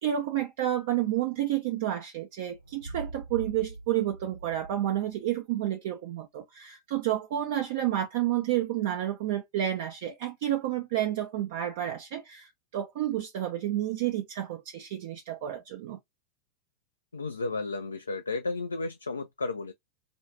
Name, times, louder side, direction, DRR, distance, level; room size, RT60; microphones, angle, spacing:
voice 1, 0.0-16.0, right 12 dB, 50° right, 0.5 m, -30 dB
sound 1, 2.5-5.3, right 2 dB, 90° right, 0.9 m, -43 dB
voice 2, 17.1-19.7, left 3 dB, 75° left, 0.3 m, -33 dB
2.5 x 2.4 x 3.0 m
figure-of-eight pair, 90°, 0 cm